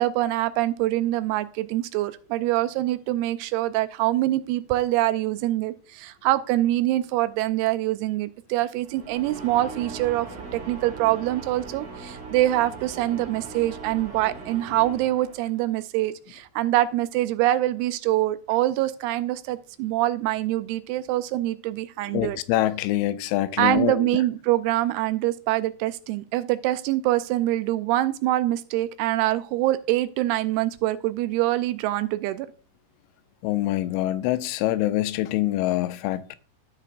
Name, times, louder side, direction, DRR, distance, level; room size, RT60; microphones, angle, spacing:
voice 1, 0.0-10.3 10.5-22.4 23.6-32.5, right 15 dB, 85° right, 2.6 m, -24 dB
sound 1, 8.8-15.7, right 4 dB, 60° right, 4.5 m, -40 dB
voice 2, 22.1-24.1 33.4-36.4, left 15 dB, 90° left, 2.6 m, -25 dB
15.5 x 5.8 x 2.5 m
omnidirectional pair, 4.5 m